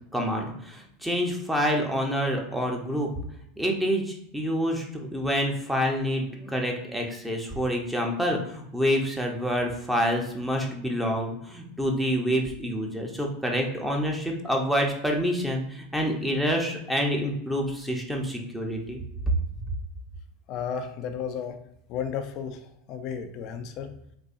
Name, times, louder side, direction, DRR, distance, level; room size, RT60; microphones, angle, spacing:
voice 1, 0.1-3.1 3.6-19.0, equal, 5° right, 1 dB, 0.8 m, -27 dB
voice 2, 20.5-21.6 21.9-23.9, left 7 dB, 50° left, 7 dB, 0.5 m, -33 dB
4.0 x 2.6 x 2.6 m, 0.76 s
hypercardioid pair, 90°, 0 cm